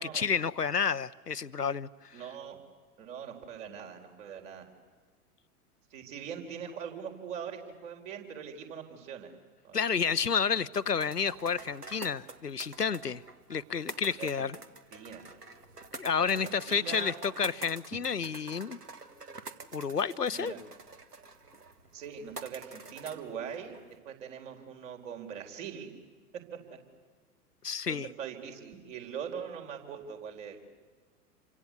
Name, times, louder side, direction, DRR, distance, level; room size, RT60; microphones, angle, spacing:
voice 1, 0.0-2.2 9.7-13.2 13.5-14.6 15.9-18.8 19.7-20.5 27.6-28.1, left 6 dB, 90° left, 0.8 m, -30 dB
voice 2, 2.1-2.6 3.0-4.6 5.9-9.3 9.6-10.1 14.2-14.5 14.9-15.2 16.2-17.1 20.3-20.6 21.9-23.8 24.0-25.9 26.5-26.8 27.9-30.7, right 7 dB, 55° right, 4.3 m, -42 dB
sound 1, 10.7-24.0, right 3 dB, 80° right, 1.8 m, -48 dB
28.5 x 25.0 x 8.2 m
figure-of-eight pair, 95°, 46 cm